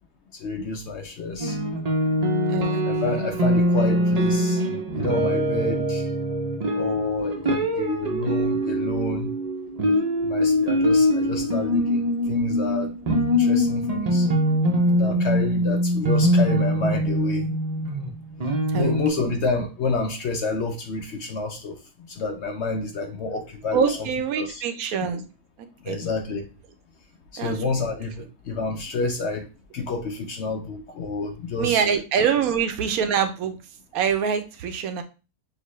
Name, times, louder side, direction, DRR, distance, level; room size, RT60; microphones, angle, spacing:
voice 1, 0.4-1.6 2.8-4.6 4.9-6.1 6.7-9.3 10.2-12.0 12.3-13.0 13.3-14.3 14.9-17.5 18.7-21.8 22.1-24.0 24.4-24.6 25.8-26.5 27.3-29.5 29.7-31.8, left 3 dB, 60° left, 4 dB, 0.7 m, -29 dB
sound 1, 1.4-19.1, equal, 45° right, 0.5 m, -23 dB
voice 2, 2.5-2.8 3.1-3.3 18.7-18.9 19.2-19.4 23.7-25.2 25.6-26.1 27.4-27.8 31.6-33.6 33.9-35.0, right 7 dB, 75° right, 8 dB, 1.0 m, -25 dB
6.5 x 2.2 x 3.1 m, 0.31 s
omnidirectional pair, 1.6 m